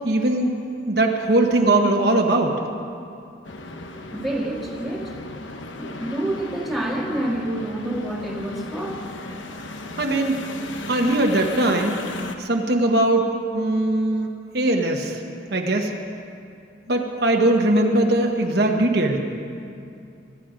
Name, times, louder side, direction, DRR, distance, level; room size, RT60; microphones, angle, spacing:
voice 1, 0.0-0.5 0.9-2.5 10.0-10.4 10.9-11.9 12.4-13.2 13.5-14.3 14.5-15.2 15.5-15.9 16.9-19.2, right 1 dB, 55° right, 2 dB, 1.1 m, -20 dB
sound 1, 3.4-12.4, left 2 dB, 85° left, 1.0 m, -36 dB
voice 2, 4.1-5.1 5.8-9.0, right 1 dB, ahead, -3 dB, 1.9 m, -28 dB
23.5 x 11.0 x 5.1 m, 2.5 s
head